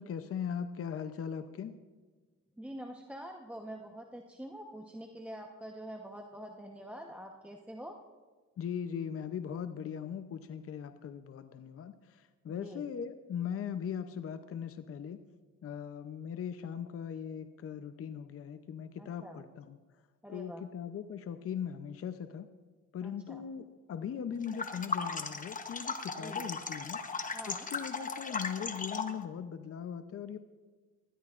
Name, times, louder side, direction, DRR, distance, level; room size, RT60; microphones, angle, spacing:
voice 1, 0.0-1.8 8.6-15.2 15.6-19.8 20.3-22.5 22.9-27.0 27.5-30.4, left 8 dB, 50° left, 9 dB, 0.7 m, -39 dB
voice 2, 2.6-8.0 12.5-12.9 19.0-19.4 20.2-20.6 23.0-23.4 26.1-26.5 27.3-27.7, equal, 5° right, 1 dB, 1.0 m, -46 dB
sound 1, 24.4-29.2, left 4 dB, 25° left, 1.0 m, -37 dB
20.0 x 13.0 x 2.5 m, 1.4 s
cardioid pair, 90°, 30 cm